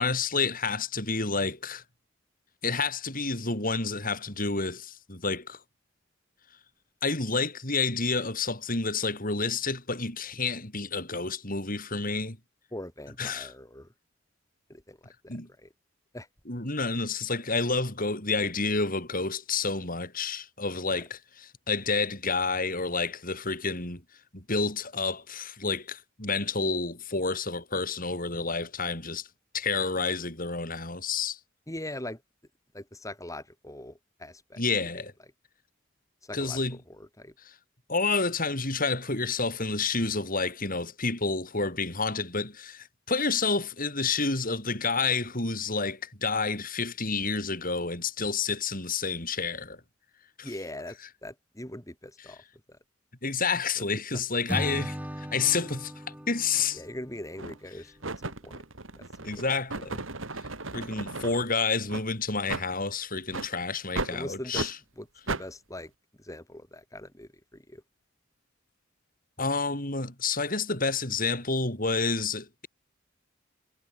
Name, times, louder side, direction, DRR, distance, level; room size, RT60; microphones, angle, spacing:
voice 1, 0.0-1.8 2.6-5.6 7.0-12.4 13.2-13.5 15.3-15.5 16.5-24.0 24.3-29.3 29.5-31.4 34.6-35.1 36.3-36.8 37.9-49.8 50.4-50.5 53.2-55.9 56.3-56.8 59.2-60.0 60.7-64.7 69.4-72.7, left 4 dB, 45° left, 7.9 m, -29 dB
voice 2, 12.7-13.9 14.7-15.7 16.1-16.3 31.7-32.2 32.7-34.6 34.9-35.0 36.2-37.3 50.4-52.4 52.7-52.8 53.8-53.9 56.7-57.9 58.2-58.6 58.9-60.0 64.1-65.9 66.2-67.8, left 1 dB, 15° left, 6.0 m, -42 dB
Acoustic guitar / Strum, 54.5-57.8, equal, 10° right, 2.9 m, -37 dB
sound 1, 56.5-56.7 57.4-57.7 58.0-61.4 61.9-62.0 62.5-62.7 63.3-63.5 63.9-64.1 64.5-64.7 65.3-65.4, right 3 dB, 80° right, 3.2 m, -35 dB
head